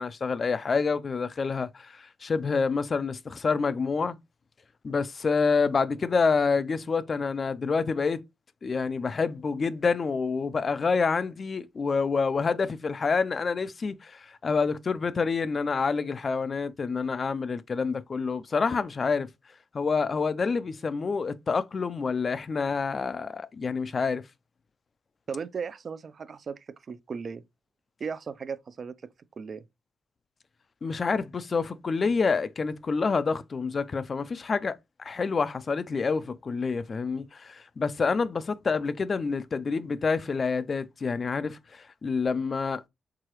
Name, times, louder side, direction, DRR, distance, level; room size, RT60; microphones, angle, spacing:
voice 1, 0.0-4.2 4.8-8.2 8.6-19.3 19.7-24.2 30.8-42.8, left 5 dB, 45° left, 0.4 m, -27 dB
voice 2, 25.3-27.4 28.0-28.9 29.4-29.6, right 6 dB, 50° right, 0.5 m, -36 dB
4.8 x 3.7 x 3.0 m
cardioid pair, 80°, 0 cm